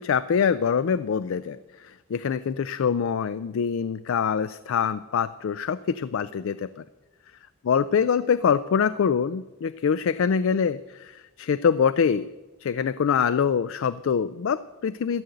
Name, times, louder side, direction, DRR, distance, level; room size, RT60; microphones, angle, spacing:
voice 1, 0.0-6.8 7.7-12.3 12.6-15.2, left 6 dB, 70° left, 15 dB, 0.4 m, -24 dB
14.0 x 8.3 x 7.8 m, 1.1 s
head